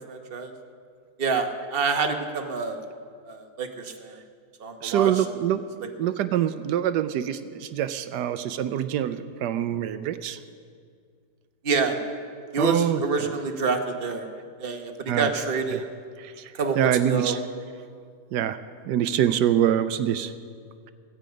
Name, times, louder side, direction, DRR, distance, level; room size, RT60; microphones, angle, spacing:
voice 1, 0.1-0.5 1.2-2.8 3.3-4.2 4.6-5.1 11.6-12.0 12.5-14.3 14.6-15.8 16.5-17.4, right 4 dB, 40° right, 4 dB, 1.2 m, -27 dB
voice 2, 4.8-5.6 6.0-10.4 12.6-13.0 15.1-15.3 15.7-15.8 16.2-17.4 18.3-18.6 18.9-20.3, right 10 dB, 85° right, 11 dB, 1.2 m, -25 dB
16.0 x 15.5 x 5.2 m, 2.2 s
omnidirectional pair, 1.7 m